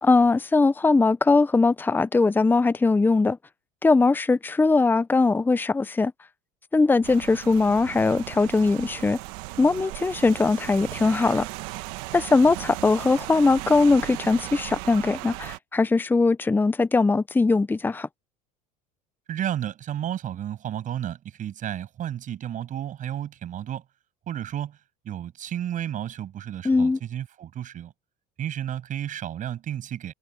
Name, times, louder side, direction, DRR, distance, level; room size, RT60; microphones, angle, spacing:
voice 1, 0.0-3.4 3.8-6.1 6.7-9.2 9.6-11.5 12.1-18.1 26.6-27.0, left 3 dB, 10° left, 0.7 m, -20 dB
Rain, 7.0-15.6, right 22 dB, 75° right, 1.4 m, -37 dB
voice 2, 19.3-23.8 24.3-24.8 25.0-27.9 28.4-30.1, right 10 dB, 45° right, 7.2 m, -32 dB
supercardioid pair, 100°, 18 cm